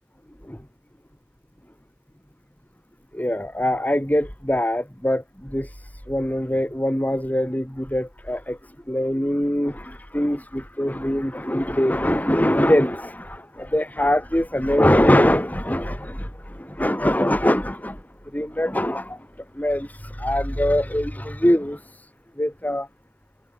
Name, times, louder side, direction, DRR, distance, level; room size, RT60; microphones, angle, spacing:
voice 1, 3.1-8.6 8.9-18.0 18.3-19.3 19.5-22.1 22.4-22.9, left 1 dB, 10° left, 3.9 m, -23 dB
head